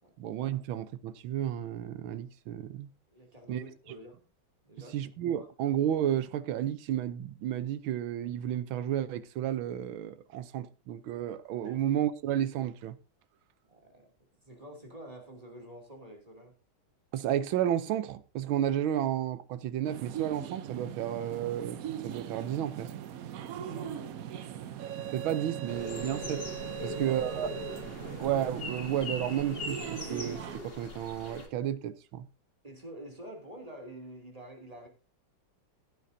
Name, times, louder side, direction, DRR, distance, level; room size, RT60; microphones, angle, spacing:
voice 1, 0.2-2.9 3.5-3.6 3.9-4.0 4.9-13.0 17.1-22.9 25.1-26.5 26.8-27.5 28.2-32.3, right 11 dB, 90° right, 1.6 m, -32 dB
voice 2, 3.1-4.2 4.6-4.9 5.4-5.5 11.6-11.8 13.7-14.1 14.4-16.5 23.4-24.4 26.8-27.2 32.6-34.9, right 1 dB, 20° right, 2.7 m, -48 dB
sound 1, 19.8-30.6, right 10 dB, 65° right, 0.9 m, -40 dB
sound 2, 25.7-31.5, left 2 dB, 30° left, 2.0 m, -41 dB
16.5 x 9.4 x 2.7 m
omnidirectional pair, 2.1 m